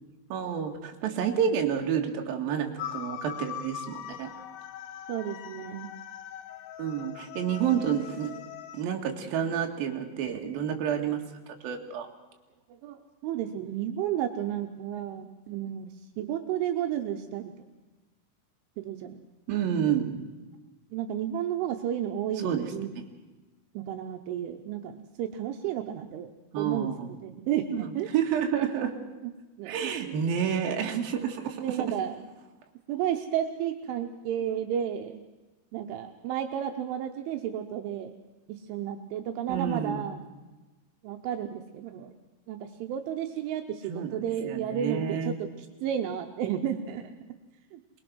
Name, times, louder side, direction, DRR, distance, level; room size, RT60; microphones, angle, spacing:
voice 1, 0.3-4.3 6.8-8.4 8.7-11.2 11.6-12.1 19.5-20.3 22.4-22.9 26.5-27.1 27.7-29.0 29.6-32.0 39.5-40.1 43.9-44.2 44.5-45.4, right 8 dB, 60° right, 2 dB, 3.0 m, -29 dB
sound 1, 2.8-8.8, left 10 dB, 75° left, 2.6 m, -41 dB
voice 2, 5.1-5.9 12.8-17.5 18.8-19.2 20.9-22.9 23.7-26.3 26.6-26.9 27.2-28.1 29.2-29.3 29.6-30.2 31.5-32.2 32.9-35.2 35.7-38.1 38.5-40.2 41.0-42.1 42.5-47.1 47.7-47.8, right 10 dB, 80° right, 5 dB, 3.2 m, -32 dB
25.0 x 20.5 x 6.3 m, 1.1 s
omnidirectional pair, 5.8 m